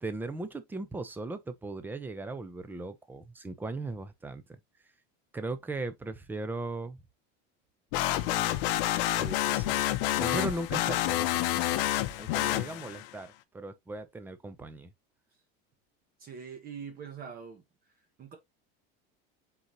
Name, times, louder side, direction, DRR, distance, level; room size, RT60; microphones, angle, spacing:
voice 1, 0.0-4.6 5.3-7.0 8.2-8.6 9.2-9.8 10.2-14.9, right 2 dB, 5° right, 0.4 m, -38 dB
sound 1, 7.9-13.1, left 15 dB, 70° left, 0.6 m, -28 dB
voice 2, 16.2-17.6 18.2-18.4, right 6 dB, 30° right, 1.0 m, -43 dB
4.0 x 3.9 x 2.9 m
cardioid pair, 145°, 29 cm